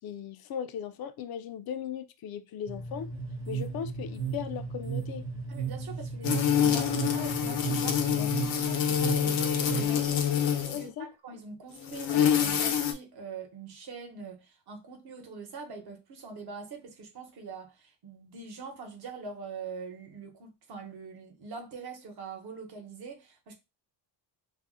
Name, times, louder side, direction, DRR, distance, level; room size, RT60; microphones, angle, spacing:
voice 1, 0.0-3.1 3.5-5.2 10.7-11.1, left 8 dB, 55° left, 0.5 m, -37 dB
sound 1, 2.7-8.5, left 1 dB, 10° right, 0.5 m, -40 dB
sound 2, 3.1-9.9, right 11 dB, 90° right, 0.6 m, -37 dB
voice 2, 5.5-23.5, right 4 dB, 60° right, 1.0 m, -44 dB
sound 3, 6.2-10.9 11.8-12.9, left 8 dB, 85° left, 0.8 m, -26 dB
2.5 x 2.0 x 3.6 m
cardioid pair, 145°, 44 cm